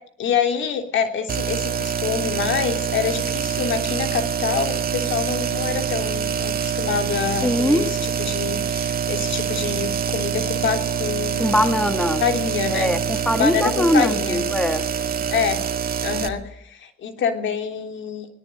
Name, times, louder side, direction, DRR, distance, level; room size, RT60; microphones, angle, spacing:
voice 1, 0.2-11.6 12.2-12.9 13.4-14.4 15.3-15.6 16.0-18.3, left 7 dB, 70° left, 7 dB, 3.4 m, -26 dB
sound 1, 1.3-16.3, right 7 dB, 50° right, 2.0 m, -25 dB
voice 2, 7.4-7.9 11.4-12.2 12.7-14.8, left 1 dB, 5° left, 9 dB, 2.0 m, -21 dB
20.0 x 19.5 x 9.2 m, 0.66 s
cardioid pair, 90°, 20 cm